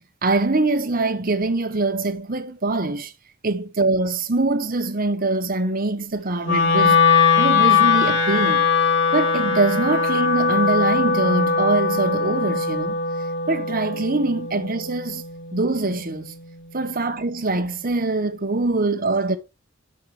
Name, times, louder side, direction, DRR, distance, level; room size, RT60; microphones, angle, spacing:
voice 1, 0.0-3.1 3.4-8.7 9.1-13.0 13.5-15.2 15.5-16.3 16.7-19.4, right 2 dB, 45° right, 1.1 m, -23 dB
Wind instrument woodwind instrument, 6.4-16.6, left 5 dB, 65° left, 2.8 m, -21 dB
8.4 x 6.0 x 4.9 m
head